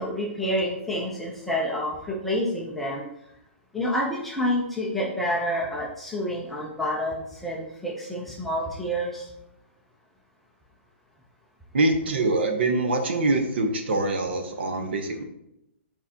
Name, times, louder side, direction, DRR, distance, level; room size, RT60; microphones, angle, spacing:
voice 1, 0.0-3.1 3.7-9.3, equal, ahead, -3 dB, 0.5 m, -28 dB
voice 2, 11.7-15.2, right 2 dB, 55° right, 5 dB, 0.9 m, -24 dB
8.5 x 4.3 x 2.8 m, 0.83 s
hypercardioid pair, 175°, 7 cm